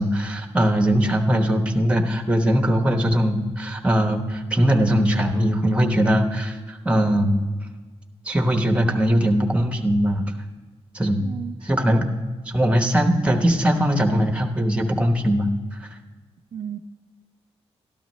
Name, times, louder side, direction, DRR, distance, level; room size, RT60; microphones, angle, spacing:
voice 1, 0.0-7.4 8.2-10.3 10.9-11.3 11.6-12.0 12.5-15.5, equal, 10° right, 4 dB, 0.9 m, -20 dB
voice 2, 11.2-12.0 16.5-16.8, right 8 dB, 50° right, 6 dB, 0.4 m, -35 dB
13.0 x 11.5 x 3.1 m, 1.4 s
wide cardioid pair, 135°, 11 cm